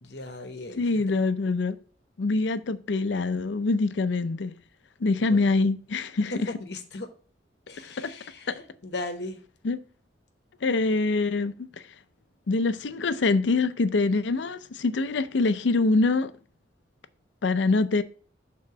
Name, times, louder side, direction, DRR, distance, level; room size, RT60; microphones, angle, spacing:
voice 1, 0.0-0.9 5.3-5.5 6.3-7.1 7.7-9.4, left 2 dB, 65° left, 1.0 m, -37 dB
voice 2, 0.8-1.8 2.2-4.5 5.0-6.3 7.8-8.1 8.5-8.6 9.6-9.8 10.6-11.7 12.5-16.3 17.4-18.0, left 3 dB, 80° left, 0.5 m, -24 dB
6.7 x 3.8 x 5.9 m
head